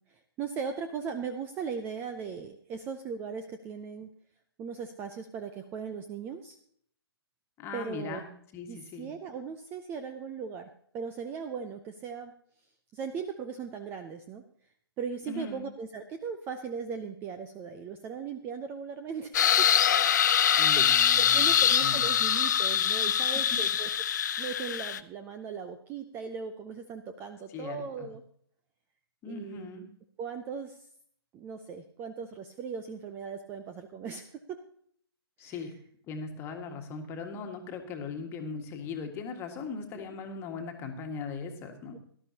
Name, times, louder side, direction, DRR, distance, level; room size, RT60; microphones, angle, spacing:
voice 1, 0.1-4.1 4.6-6.6 7.7-8.2 8.7-12.3 12.9-14.4 15.0-19.7 20.4-20.8 21.2-23.9 24.4-28.2 29.2-29.9 30.2-30.8 31.3-34.6 35.4-35.6 39.9-40.1 41.9-42.0, right 6 dB, 15° right, 8 dB, 0.6 m, -38 dB
voice 2, 7.6-8.3 8.5-9.1 15.2-15.7 20.6-21.4 21.8-22.1 27.5-28.1 29.2-29.8 35.4-35.7 36.1-42.0, left 4 dB, 20° left, 4 dB, 1.7 m, -39 dB
sound 1, 19.3-25.0, left 9 dB, 45° left, 0.7 m, -24 dB
18.0 x 12.0 x 2.8 m, 0.63 s
figure-of-eight pair, 135°, 13 cm